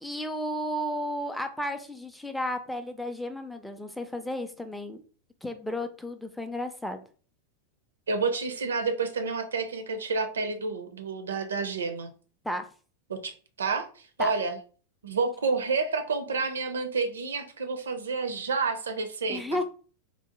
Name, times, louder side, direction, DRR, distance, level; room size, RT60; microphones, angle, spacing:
voice 1, 0.0-5.0 5.4-7.0 12.4-12.7 14.2-14.3 19.3-19.6, left 1 dB, 5° left, 0.4 m, -33 dB
voice 2, 8.1-12.1 13.1-13.3 13.6-13.9 14.2-14.6 15.0-19.4, right 4 dB, 70° right, 0.5 m, -29 dB
3.7 x 2.0 x 2.9 m
figure-of-eight pair, 90°, 0 cm